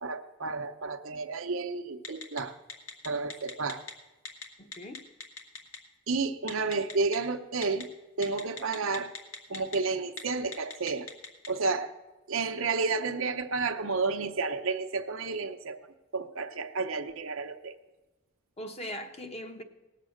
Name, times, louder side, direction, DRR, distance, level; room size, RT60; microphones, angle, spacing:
voice 1, 0.0-2.6 3.0-3.9 6.1-7.9 8.2-9.1 9.5-11.1 11.5-11.9 12.3-15.8 16.1-17.7, right 4 dB, 70° right, 7 dB, 0.8 m, -31 dB
Telephone, 2.0-2.4 2.7-3.9 4.2-4.4 4.7-5.8 6.5-7.2 7.6-7.8 8.2-9.8 10.1-10.2 10.5-11.5, left 5 dB, 70° left, 1.7 m, -39 dB
voice 2, 4.6-5.1 18.6-19.6, equal, 30° left, 6 dB, 0.9 m, -40 dB
18.5 x 7.5 x 6.4 m, 1.1 s
head